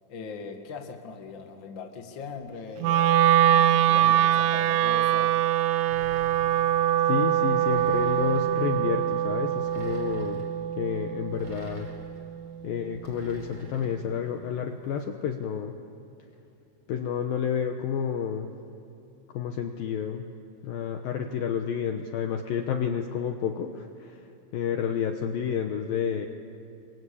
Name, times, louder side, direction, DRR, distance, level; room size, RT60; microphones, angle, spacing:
voice 1, 0.1-5.4, left 5 dB, 40° left, 4 dB, 1.9 m, -40 dB
Wind instrument woodwind instrument, 2.8-13.0, right 11 dB, 90° right, 3.1 m, -24 dB
sound 1, 5.9-6.8 7.7-8.6 9.6-10.5 11.3-12.2 13.0-14.0, right 1 dB, 30° right, 4.6 m, -46 dB
voice 2, 7.1-10.4 10.8-11.9 12.6-15.7 16.9-18.5 19.3-20.3 20.6-24.2 24.5-26.3, left 7 dB, 70° left, 5 dB, 2.4 m, -30 dB
28.5 x 24.0 x 8.6 m, 2.8 s
omnidirectional pair, 5.1 m